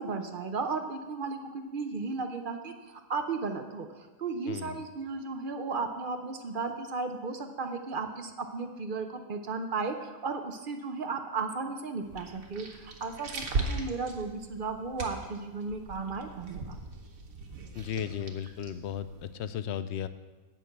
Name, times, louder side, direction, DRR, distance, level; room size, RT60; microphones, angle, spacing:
voice 1, 0.0-16.8, right 4 dB, 50° right, 6 dB, 0.8 m, -35 dB
voice 2, 4.5-4.8 17.7-20.1, left 9 dB, 65° left, 13 dB, 0.7 m, -35 dB
sound 1, 12.0-19.3, right 3 dB, 85° right, 1.6 m, -39 dB
8.9 x 6.0 x 8.0 m, 1.3 s
omnidirectional pair, 1.4 m